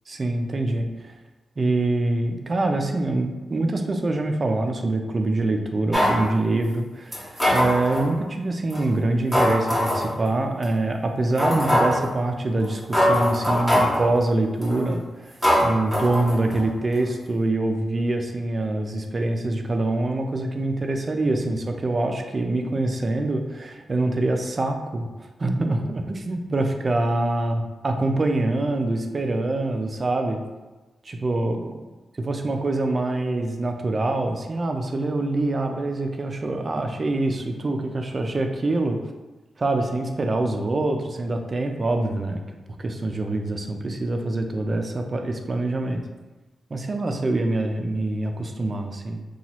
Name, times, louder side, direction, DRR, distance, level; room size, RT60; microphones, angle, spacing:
voice 1, 0.1-1.2 1.6-25.1 25.4-30.4 31.0-31.8 32.2-39.0 39.6-42.4 42.8-46.0 46.7-49.3, right 2 dB, 35° right, 4 dB, 0.3 m, -25 dB
sound 1, 5.9-6.2 7.1-8.1 8.7-8.8 9.3-10.1 10.6-10.7 11.4-12.0 12.6-12.7 12.9-14.0 14.6-14.9 15.4-16.6 16.9-17.0, equal, ahead, 0.7 m, -22 dB
2.9 x 2.3 x 2.8 m, 1.2 s
wide cardioid pair, 110°, 0 cm